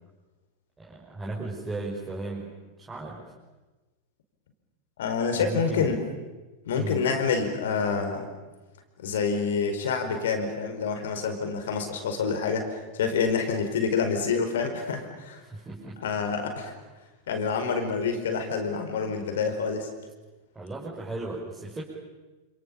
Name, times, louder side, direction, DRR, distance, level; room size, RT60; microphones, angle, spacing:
voice 1, 0.8-3.2 5.4-5.9 6.8-7.1 15.4-16.0 20.5-21.8, right 2 dB, 10° right, -5 dB, 5.9 m, -36 dB
voice 2, 5.0-6.0 6.7-8.2 9.0-15.4 16.0-16.7 17.3-19.9, left 5 dB, 60° left, 6 dB, 4.9 m, -27 dB
29.0 x 28.5 x 7.1 m, 1.2 s
figure-of-eight pair, 90°, 0 cm